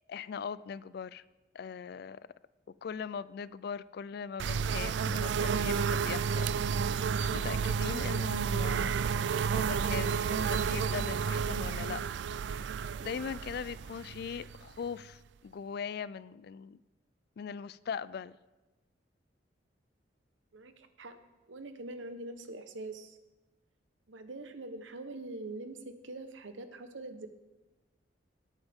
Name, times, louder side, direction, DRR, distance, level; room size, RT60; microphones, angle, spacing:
voice 1, 0.1-1.2 1.5-2.2 2.8-6.9 7.2-9.0 9.5-12.0 13.0-16.8 17.4-18.4, left 6 dB, 55° left, 0.3 m, -40 dB
sound 1, 4.4-15.0, right 6 dB, 65° right, 0.3 m, -31 dB
voice 2, 20.5-21.2 21.5-23.2 24.1-27.3, right 2 dB, 80° right, 1.0 m, -43 dB
17.5 x 9.0 x 3.6 m
head